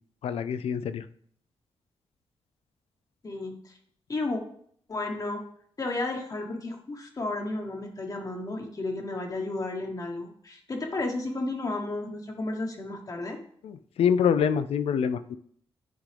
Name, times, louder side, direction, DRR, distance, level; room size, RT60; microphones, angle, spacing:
voice 1, 0.2-1.1 13.6-15.4, left 7 dB, 90° left, 12 dB, 0.4 m, -26 dB
voice 2, 3.2-3.7 4.1-4.4 4.9-5.4 5.8-13.4, left 2 dB, 40° left, 2 dB, 1.0 m, -33 dB
10.0 x 3.8 x 3.3 m, 0.63 s
wide cardioid pair, 110°, 10 cm